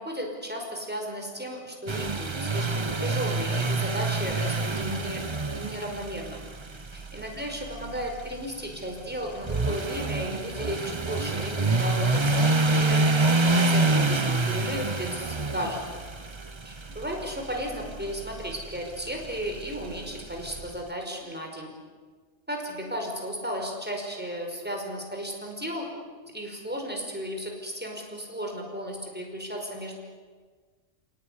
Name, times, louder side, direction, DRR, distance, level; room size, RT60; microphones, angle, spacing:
voice 1, 0.0-5.3 5.5-6.4 6.9-13.0 13.4-16.0 16.7-21.7 22.5-25.9 26.3-30.0, equal, 5° right, 1 dB, 5.2 m, -34 dB
sound 1, 1.9-20.7, right 2 dB, 25° right, 0.9 m, -28 dB
30.0 x 18.5 x 9.9 m, 1.5 s
omnidirectional pair, 1.4 m